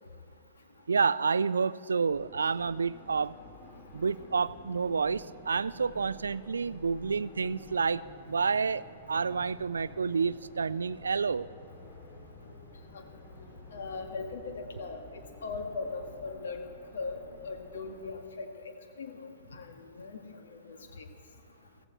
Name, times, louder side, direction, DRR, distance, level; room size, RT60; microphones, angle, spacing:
voice 1, 0.9-3.3 3.9-11.5, right 5 dB, 80° right, 19 dB, 0.3 m, -29 dB
sound 1, 2.1-18.0, left 2 dB, 40° left, 2.8 m, -51 dB
voice 2, 13.7-20.2 20.5-21.1, left 4 dB, 70° left, 5 dB, 1.7 m, -40 dB
16.0 x 15.5 x 4.4 m, 2.4 s
figure-of-eight pair, 110°, 0 cm